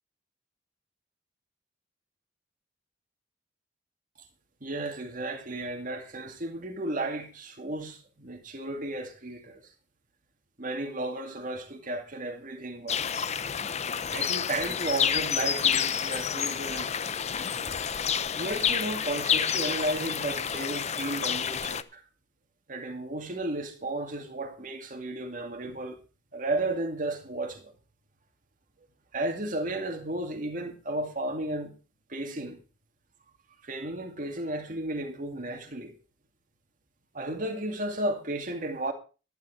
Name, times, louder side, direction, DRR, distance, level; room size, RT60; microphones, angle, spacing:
voice 1, 4.6-9.6 10.6-13.0 14.1-16.9 17.7-17.8 18.3-22.0 22.7-26.0 26.3-27.7 29.1-31.7 32.1-32.6 33.6-35.9 37.1-38.9, right 2 dB, 45° right, 2.3 m, -33 dB
sound 1, 12.9-21.8, left 8 dB, 35° left, 0.6 m, -29 dB
12.0 x 10.5 x 5.0 m
head